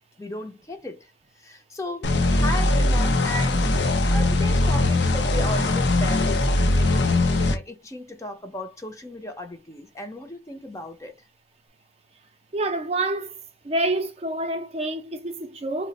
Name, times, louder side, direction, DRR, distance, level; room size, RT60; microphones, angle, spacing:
voice 1, 0.2-1.1 1.4-11.2, left 1 dB, 15° left, 0.5 m, -36 dB
sound 1, 2.0-7.6, left 2 dB, 80° left, 0.6 m, -21 dB
voice 2, 12.5-13.4 13.6-15.9, right 2 dB, 35° right, 0.5 m, -27 dB
2.4 x 2.1 x 3.8 m
head